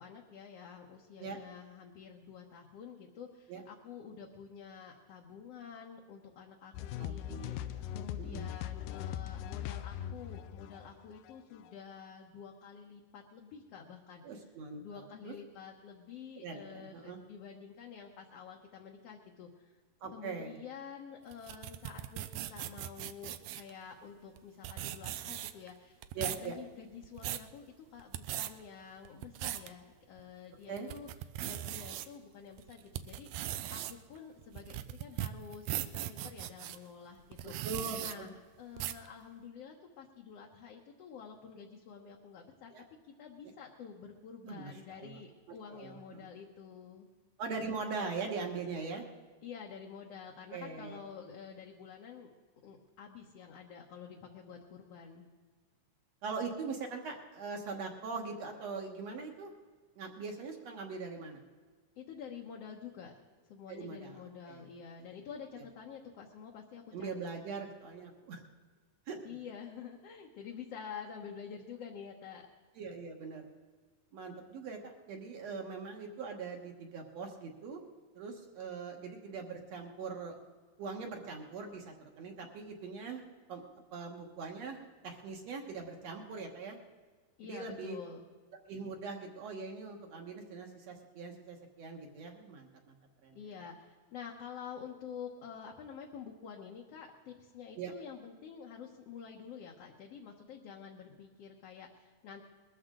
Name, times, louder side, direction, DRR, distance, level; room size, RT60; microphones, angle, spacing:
voice 1, 0.0-14.2 14.8-19.8 20.1-27.7 27.9-31.1 31.4-37.5 38.0-42.7 43.2-47.1 49.4-52.3 52.6-55.3 62.0-67.3 69.2-72.5 87.4-88.2 93.3-102.4, left 7 dB, 60° left, -1 dB, 1.9 m, -49 dB
sound 1, 6.7-11.7, left 11 dB, 85° left, 2.2 m, -40 dB
voice 2, 7.0-7.8 8.2-8.4 14.2-15.3 16.4-17.2 20.0-20.6 26.1-26.5 30.7-30.9 37.6-38.3 42.7-42.8 44.4-45.2 45.7-46.3 47.4-49.0 50.5-51.0 56.2-59.5 60.0-61.4 63.7-64.2 64.5-64.6 65.6-65.7 66.9-68.4 69.1-69.2 72.8-73.5 74.1-77.8 78.1-80.4 80.8-83.6 83.9-86.8 87.4-88.0 88.7-92.9 93.2-93.4 97.8-97.9, right 4 dB, 60° right, 2 dB, 2.3 m, -41 dB
sound 2, 21.3-23.7 24.4-24.5 24.6-25.7 26.0-26.5 26.9-27.5 28.0-28.5 29.0-29.7 30.2-30.3 30.8-32.1 32.6-36.8 37.3-38.1 38.8-39.1, right 13 dB, 75° right, 1.7 m, -39 dB
21.0 x 14.0 x 3.8 m, 1.5 s
omnidirectional pair, 3.7 m